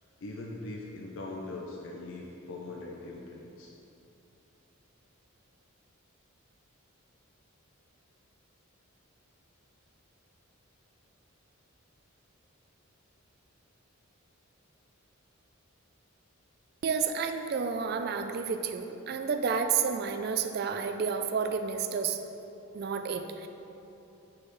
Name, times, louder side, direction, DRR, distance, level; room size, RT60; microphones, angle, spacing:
voice 1, 0.2-3.7, left 2 dB, 65° left, -1 dB, 0.5 m, -41 dB
voice 2, 16.8-22.2 22.7-23.5, right 6 dB, 45° right, 7 dB, 0.3 m, -30 dB
8.4 x 4.7 x 3.1 m, 3.0 s
head